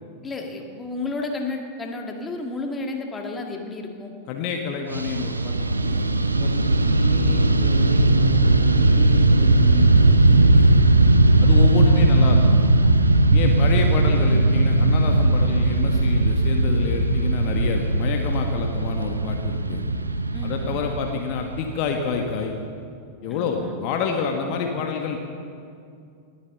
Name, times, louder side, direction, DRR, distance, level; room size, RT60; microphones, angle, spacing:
voice 1, 0.2-4.1 20.3-20.7 23.3-23.8, left 3 dB, 15° left, 3 dB, 1.7 m, -32 dB
voice 2, 4.3-6.1 6.4-10.8 11.4-12.7 13.3-19.8 20.4-22.5 23.2-25.2, left 5 dB, 45° left, 3 dB, 1.3 m, -29 dB
Fixed-wing aircraft airplane, 4.9-22.3, right 2 dB, 80° right, 0.6 m, -18 dB
19.0 x 9.0 x 6.7 m, 2.4 s
figure-of-eight pair, 90°, 0 cm